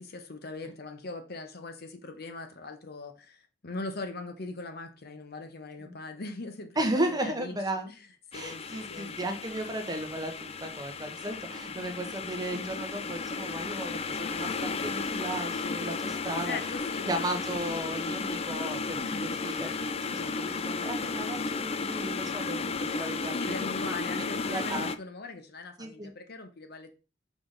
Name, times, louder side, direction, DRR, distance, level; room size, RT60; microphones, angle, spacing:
voice 1, 0.0-7.6 7.9-8.0 8.3-9.1 16.4-17.1 19.0-19.3 23.3-26.9, left 3 dB, 55° left, 0.9 m, -40 dB
voice 2, 6.8-7.9 8.3-16.6 17.1-23.6 23.9-24.9 25.8-26.1, right 1 dB, 20° right, 1.0 m, -35 dB
sound 1, 8.3-25.0, left 4 dB, 30° left, 0.4 m, -34 dB
5.9 x 5.0 x 3.8 m
head